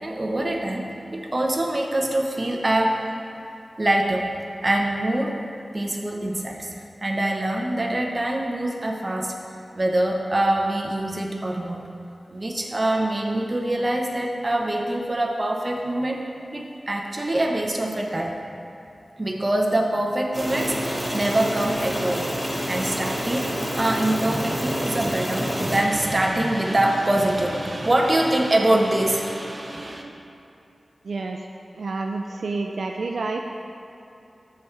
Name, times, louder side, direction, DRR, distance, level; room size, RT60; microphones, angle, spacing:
voice 1, 0.0-0.8 1.1-3.0 3.8-4.3 4.6-5.4 5.7-9.3 9.7-11.9 12.3-16.2 16.5-18.4 19.2-22.3 22.7-30.0, right 1 dB, 35° right, 0 dB, 0.9 m, -24 dB
sound 1, 20.3-25.8, equal, 10° right, 1.4 m, -28 dB
voice 2, 31.0-31.4 31.8-33.4, right 3 dB, 85° right, 2 dB, 0.4 m, -29 dB
14.0 x 4.7 x 3.3 m, 2.8 s
wide cardioid pair, 70°, 0 cm